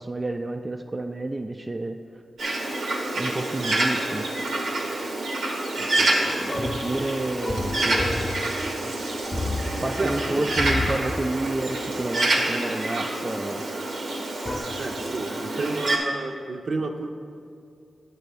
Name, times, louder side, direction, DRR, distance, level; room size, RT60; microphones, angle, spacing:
voice 1, 0.0-2.0 3.2-4.3 6.2-8.1 9.8-13.6, right 2 dB, 30° right, 5 dB, 0.3 m, -30 dB
Bird, 2.4-16.0, right 2 dB, 90° right, 1.0 m, -27 dB
voice 2, 5.8-6.2 10.0-10.4 14.8-17.1, right 3 dB, 65° right, 4 dB, 0.7 m, -31 dB
sound 1, 6.2-13.1 14.4-14.6, left 2 dB, 25° left, 0.6 m, -33 dB
9.4 x 4.0 x 6.8 m, 2.4 s
cardioid pair, 65°, 0 cm